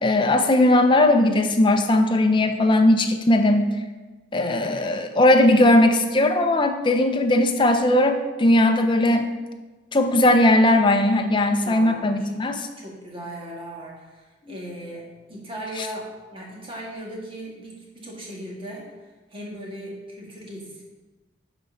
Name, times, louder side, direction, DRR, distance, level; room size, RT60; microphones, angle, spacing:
voice 1, 0.0-3.7 4.3-9.3 9.9-12.7, left 1 dB, 25° left, 6 dB, 0.6 m, -18 dB
voice 2, 4.4-4.9 11.6-12.3 12.8-18.9 19.3-20.8, right 1 dB, 30° right, -3 dB, 1.8 m, -37 dB
11.0 x 4.2 x 3.9 m, 1.2 s
head